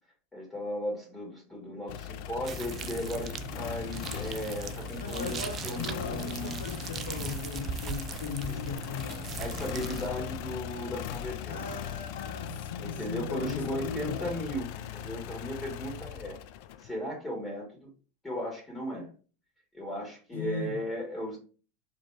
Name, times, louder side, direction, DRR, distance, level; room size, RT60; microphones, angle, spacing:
voice 1, 0.3-5.4 5.6-6.6 8.5-8.6 9.4-11.6 12.8-16.4 16.8-17.9 18.2-19.1 19.7-21.4, equal, 15° left, 2.3 m, -36 dB
sound 1, 1.9-16.9, left 10 dB, 65° left, 0.4 m, -39 dB
sound 2, 2.5-10.1, right 7 dB, 35° right, 0.5 m, -39 dB
voice 2, 5.0-9.4 11.5-14.4 20.3-20.8, left 5 dB, 85° left, 1.0 m, -38 dB
4.4 x 3.3 x 3.4 m
hypercardioid pair, 90°, 0 cm